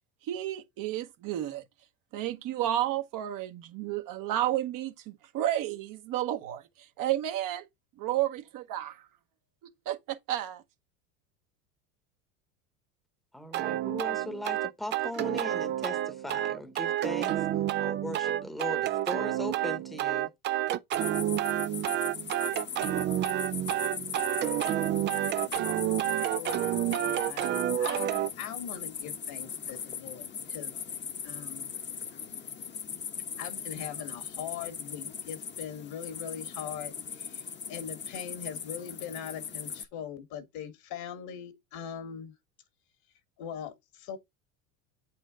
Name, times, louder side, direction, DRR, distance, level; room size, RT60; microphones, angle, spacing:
voice 1, 0.2-1.6 2.1-7.7 8.0-9.1 9.6-10.6, right 13 dB, 50° right, 1.0 m, -32 dB
voice 2, 13.3-17.5 17.8-20.3, left 1 dB, ahead, 1.0 m, -38 dB
sound 1, 13.5-28.3, right 12 dB, 25° right, 0.3 m, -29 dB
sound 2, 20.9-39.9, left 7 dB, 25° left, 1.0 m, -39 dB
voice 3, 26.0-26.6 26.9-30.8 31.2-31.7 33.4-42.3 43.4-44.2, left 8 dB, 55° left, 1.7 m, -41 dB
8.0 x 4.5 x 3.7 m
hypercardioid pair, 95°, 43 cm